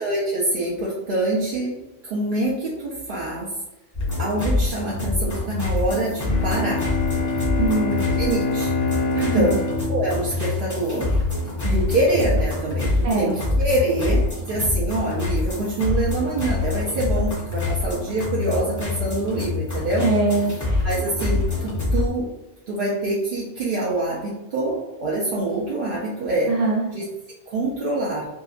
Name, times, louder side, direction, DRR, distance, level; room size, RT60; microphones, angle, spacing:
voice 1, 0.0-1.7 2.0-3.5 4.2-6.8 8.1-8.7 9.2-9.5 9.9-11.2 11.6-20.1 20.8-22.3 22.7-26.5 26.9-27.0 27.5-28.3, right 2 dB, 60° right, -5 dB, 0.6 m, -25 dB
sound 1, 3.9-22.1, left 3 dB, 20° left, 0.5 m, -25 dB
Bowed string instrument, 6.2-11.2, left 3 dB, 65° left, 0.7 m, -26 dB
voice 2, 7.6-8.0 9.1-9.6 13.0-13.4 20.0-20.8 26.5-26.8, right 3 dB, 85° right, -5 dB, 0.9 m, -22 dB
2.7 x 2.3 x 2.4 m, 0.98 s
omnidirectional pair, 1.2 m